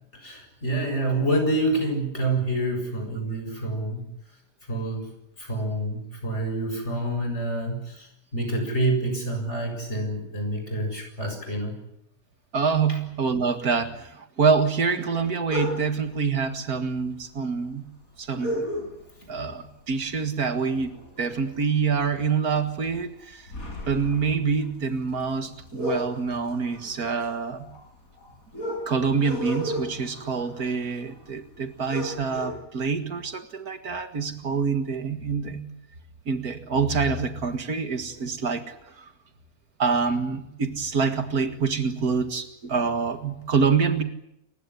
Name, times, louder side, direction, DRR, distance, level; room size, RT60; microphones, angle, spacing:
voice 1, 0.1-4.1 4.7-5.1 5.4-11.7, right 1 dB, 50° left, 4 dB, 7.5 m, -27 dB
voice 2, 12.5-17.9 18.2-18.7 19.3-23.5 23.9-27.7 28.9-35.7 36.3-39.1 39.8-44.0, right 5 dB, 90° right, 8 dB, 2.4 m, -26 dB
sound 1, 15.5-16.1 17.1-17.2 17.4-17.5 18.4-19.3 19.7-20.0 20.3-21.9 22.3-22.5 22.9-31.3 31.6-31.7 31.9-32.5, equal, 70° left, 6.9 m, -34 dB
28.5 x 16.5 x 9.9 m, 0.82 s
omnidirectional pair, 1.5 m